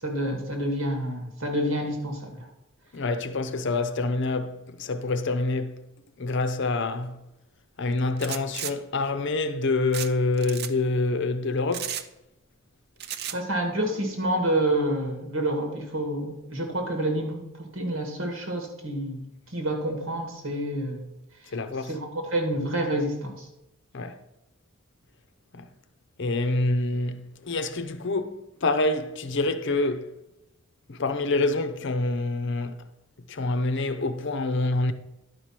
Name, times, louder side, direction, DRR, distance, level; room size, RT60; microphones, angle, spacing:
voice 1, 0.0-2.5 13.3-19.2 19.5-21.1 21.8-23.5, right 1 dB, 85° right, 2.2 m, -28 dB
voice 2, 2.9-5.8 6.2-7.2 7.8-12.0 21.5-22.0 23.9-24.1 25.5-25.7 26.2-30.1 30.9-32.7 33.3-34.9, left 2 dB, 65° left, 0.7 m, -26 dB
sound 1, 8.2-8.7 9.9-10.1 10.4-10.7 11.7-12.1 13.0-13.4, right 10 dB, 55° right, 0.5 m, -33 dB
11.0 x 4.9 x 5.9 m
head